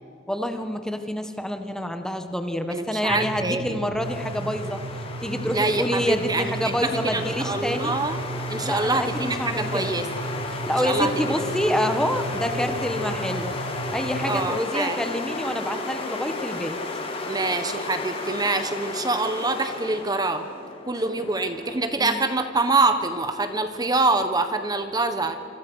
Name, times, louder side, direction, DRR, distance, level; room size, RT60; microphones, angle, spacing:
voice 1, 0.3-4.8 5.2-7.9 8.6-9.9 10.5-13.5 13.9-16.8 22.0-22.2, left 1 dB, 5° left, 7 dB, 1.4 m, -27 dB
voice 2, 2.7-3.6 5.5-8.2 8.5-10.0 10.8-11.4 14.3-15.0 17.3-20.4 20.9-25.5, right 3 dB, 20° right, 8 dB, 1.4 m, -25 dB
sound 1, 3.1-14.6, right 3 dB, 65° right, 0.5 m, -35 dB
FX - cisterna abastecimiento, 4.0-21.8, left 3 dB, 30° left, 3.0 m, -33 dB
26.5 x 26.0 x 6.4 m, 2.4 s
head